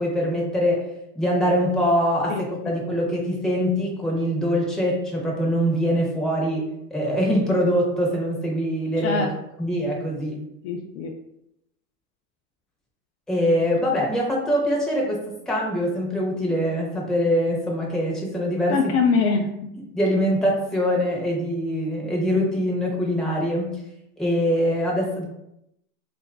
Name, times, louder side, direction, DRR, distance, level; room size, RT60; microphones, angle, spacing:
voice 1, 0.0-9.3 9.6-10.4 13.3-18.8 19.9-23.8 24.2-25.2, equal, ahead, -3 dB, 0.6 m, -23 dB
voice 2, 2.3-2.8 9.0-9.3 10.6-11.1 18.7-19.5, left 5 dB, 45° left, 2 dB, 0.4 m, -23 dB
3.0 x 2.5 x 3.3 m, 0.83 s
hypercardioid pair, 105°, 50 cm